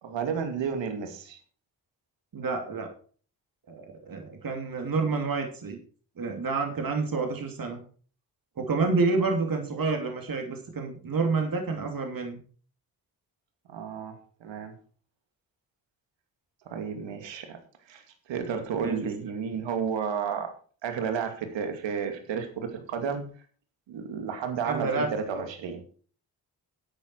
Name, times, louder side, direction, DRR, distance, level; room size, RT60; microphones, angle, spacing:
voice 1, 0.0-1.4 13.7-14.7 16.7-17.6 17.9-20.5 20.8-23.3 23.9-25.8, right 6 dB, 80° right, 6 dB, 2.5 m, -32 dB
voice 2, 2.3-2.9 3.7-5.8 6.2-7.8 8.6-12.4 18.8-19.1 24.6-25.1, right 4 dB, 50° right, 3 dB, 3.0 m, -29 dB
12.0 x 9.3 x 4.6 m, 0.42 s
supercardioid pair, 50°, 44 cm